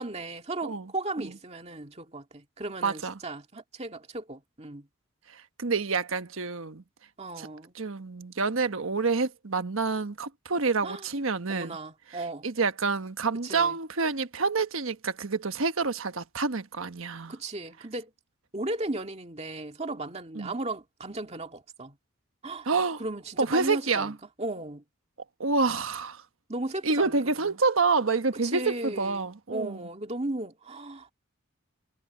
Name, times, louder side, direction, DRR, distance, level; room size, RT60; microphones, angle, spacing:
voice 1, 0.0-4.9 7.2-7.7 10.8-11.0 11.5-12.5 13.4-13.8 17.3-18.1 18.5-22.0 22.4-22.7 23.0-24.1 24.4-24.8 26.5-27.2 27.4-27.6 28.4-31.1, right 2 dB, 30° right, 2.1 m, -36 dB
voice 2, 2.8-3.1 5.6-6.8 7.4-7.5 7.8-11.8 12.4-17.3 20.3-20.5 22.7-23.0 23.4-24.1 25.4-26.2 26.8-29.9, right 4 dB, 75° right, 1.2 m, -28 dB
head